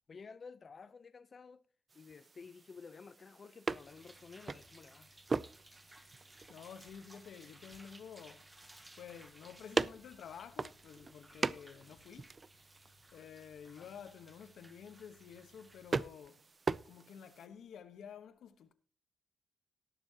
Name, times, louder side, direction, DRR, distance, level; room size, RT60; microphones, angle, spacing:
voice 1, 0.1-1.6 1.9-5.1 13.6-13.9, left 5 dB, 40° left, 0.7 m, -53 dB
sound 1, 1.9-17.5, right 4 dB, 35° right, 0.4 m, -42 dB
sound 2, 3.7-16.1, right 1 dB, 15° right, 1.6 m, -60 dB
voice 2, 6.5-8.5 9.0-12.3 13.1-16.4 16.8-18.7, left 8 dB, 80° left, 1.2 m, -51 dB
18.5 x 7.0 x 2.9 m
cardioid pair, 120°, 0 cm